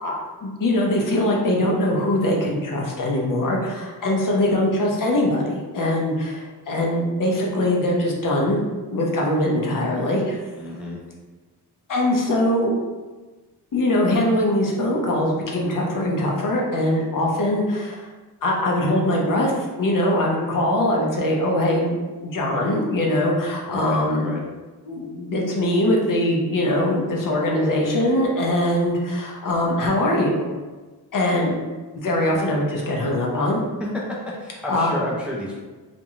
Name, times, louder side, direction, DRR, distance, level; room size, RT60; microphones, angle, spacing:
voice 1, 0.0-8.6 8.9-10.4 11.9-12.7 13.7-18.1 18.4-22.0 22.2-24.3 24.9-30.4 31.1-31.5 31.9-33.6 34.7-34.9, left 1 dB, 50° left, -1 dB, 0.7 m, -22 dB
voice 2, 10.6-11.0 23.7-24.4 32.3-32.4 33.8-34.0 34.4-35.6, left 1 dB, 5° right, -4 dB, 0.4 m, -31 dB
2.5 x 2.2 x 2.9 m, 1.3 s
cardioid pair, 75°, 41 cm